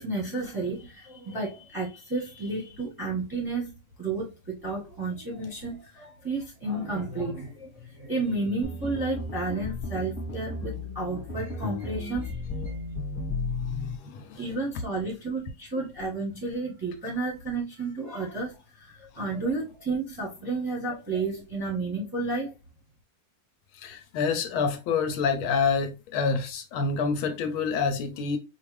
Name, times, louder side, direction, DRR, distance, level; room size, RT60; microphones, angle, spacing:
voice 1, 0.0-12.7 14.3-18.5 18.9-22.5, right 3 dB, 15° right, 0.9 m, -32 dB
sound 1, 8.6-14.0, left 3 dB, 25° left, 1.3 m, -34 dB
voice 2, 13.6-14.4 23.8-28.4, left 5 dB, 75° left, 1.4 m, -27 dB
4.7 x 2.5 x 3.2 m
omnidirectional pair, 2.4 m